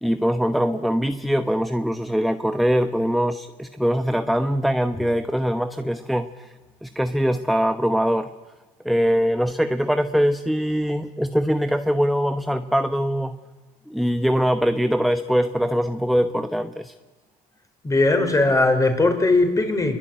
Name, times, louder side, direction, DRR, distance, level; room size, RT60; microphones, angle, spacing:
voice 1, 0.0-6.5 6.8-8.3 8.8-13.4 13.9-16.9, equal, ahead, 1.0 m, -22 dB
voice 2, 17.8-20.0, left 2 dB, 20° left, 5.0 m, -19 dB
27.5 x 23.0 x 9.2 m
cardioid pair, 110°, 17 cm